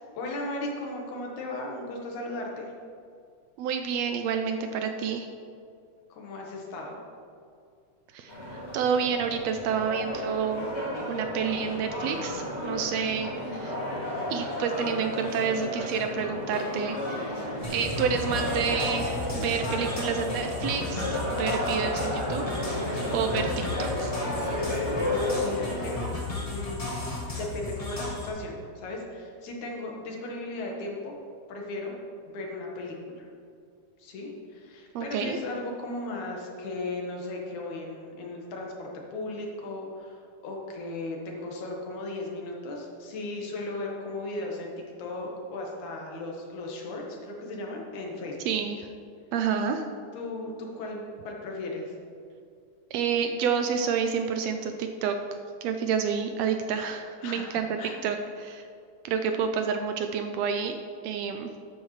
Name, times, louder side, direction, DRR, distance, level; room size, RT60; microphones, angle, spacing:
voice 1, 0.1-2.7 6.1-7.0 25.0-26.1 26.5-26.9 27.3-31.2 31.5-32.0 32.3-33.3 34.0-44.7 45.0-48.4 50.1-51.9 57.2-58.0, left 2 dB, 85° left, 0 dB, 2.9 m, -36 dB
voice 2, 3.6-5.3 8.1-10.7 11.1-13.8 14.3-17.4 17.7-24.2 34.9-35.4 48.5-48.9 49.3-49.8 52.9-55.2 55.6-57.7 58.0-58.6 59.0-60.8 61.0-61.5, right 6 dB, 80° right, 6 dB, 1.6 m, -29 dB
sound 1, 8.3-26.0, left 1 dB, 25° left, 2.3 m, -32 dB
sound 2, 17.6-28.3, left 2 dB, 45° left, 0.4 m, -35 dB
12.5 x 9.3 x 3.2 m, 2.3 s
omnidirectional pair, 3.3 m